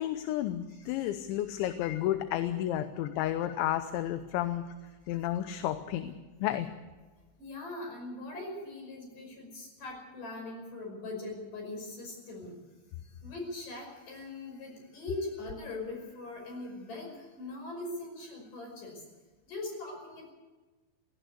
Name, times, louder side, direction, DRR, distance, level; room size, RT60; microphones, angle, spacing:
voice 1, 0.0-4.7 5.1-6.1 6.4-6.7, left 12 dB, 80° left, 10 dB, 3.1 m, -32 dB
voice 2, 0.7-1.1 1.5-1.7 7.4-12.6 13.0-19.1 19.5-20.3, left 2 dB, 45° left, 2 dB, 7.0 m, -41 dB
18.5 x 17.0 x 8.4 m, 1.2 s
omnidirectional pair, 5.5 m